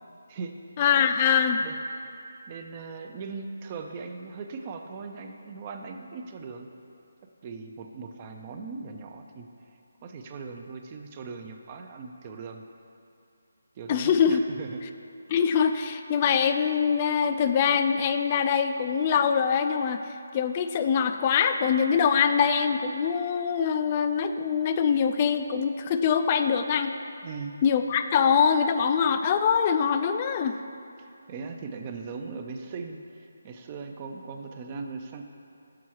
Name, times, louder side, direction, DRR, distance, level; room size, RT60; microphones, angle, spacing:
voice 1, 0.8-1.6 13.9-14.4 15.3-27.0 27.6-30.6, left 7 dB, 30° left, 8 dB, 0.3 m, -23 dB
voice 2, 2.5-6.7 7.4-9.5 10.0-12.6 13.8-14.8 27.2-27.6 31.0-35.3, right 4 dB, 30° right, 5 dB, 0.5 m, -39 dB
6.2 x 6.0 x 4.6 m, 2.6 s
figure-of-eight pair, 155°, 0 cm